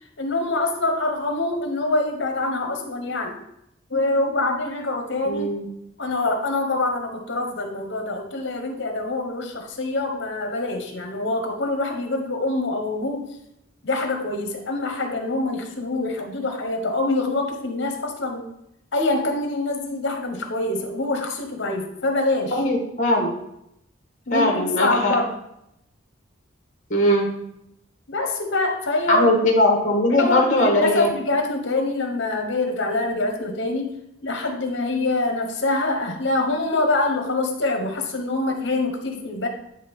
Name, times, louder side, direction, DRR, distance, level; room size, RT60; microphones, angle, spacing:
voice 1, 0.2-3.4 3.9-5.5 6.0-13.3 13.8-18.5 18.9-22.6 24.3-25.3 28.1-29.3 30.1-34.0 34.2-39.5, left 2 dB, 65° left, 3 dB, 1.1 m, -25 dB
voice 2, 5.2-5.6 22.5-23.3 24.3-25.1 26.9-27.3 29.1-31.1, left 1 dB, 40° left, 0 dB, 1.4 m, -20 dB
9.5 x 3.2 x 3.6 m, 0.80 s
head